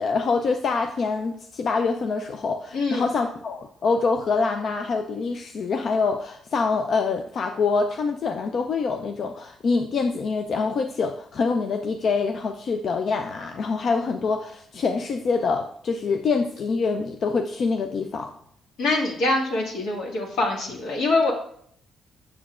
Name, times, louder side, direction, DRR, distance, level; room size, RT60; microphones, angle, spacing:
voice 1, 0.0-18.3, left 4 dB, 55° left, 5 dB, 0.5 m, -25 dB
voice 2, 2.7-3.1 18.8-21.3, left 2 dB, 85° left, -1 dB, 1.9 m, -24 dB
7.3 x 6.9 x 2.5 m, 0.64 s
cardioid pair, 90°, 0 cm